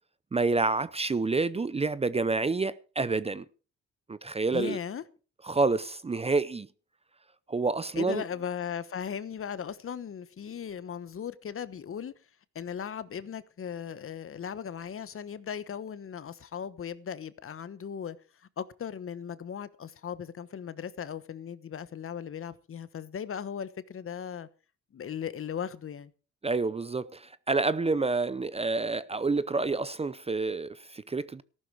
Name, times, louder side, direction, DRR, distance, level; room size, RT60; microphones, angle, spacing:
voice 1, 0.3-3.4 4.1-4.8 5.4-6.7 7.5-8.2 26.4-31.4, right 3 dB, 20° right, 0.6 m, -28 dB
voice 2, 4.5-5.0 7.9-12.1 12.5-18.2 18.6-24.5 24.9-26.1, left 8 dB, 45° left, 1.1 m, -37 dB
14.5 x 12.0 x 4.7 m
cardioid pair, 90°, 30 cm